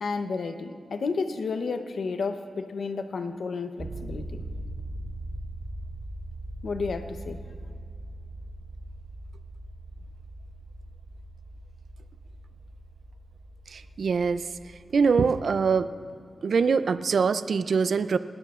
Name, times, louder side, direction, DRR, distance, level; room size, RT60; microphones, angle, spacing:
voice 1, 0.0-4.4 6.6-7.4, left 4 dB, 65° left, 8 dB, 0.8 m, -31 dB
sound 1, 3.8-15.7, right 1 dB, 35° right, 1.3 m, -41 dB
voice 2, 13.7-14.4 14.9-15.9 16.4-18.2, right 5 dB, 65° right, 13 dB, 0.4 m, -23 dB
30.0 x 13.0 x 2.5 m, 2.4 s
wide cardioid pair, 115°, 0 cm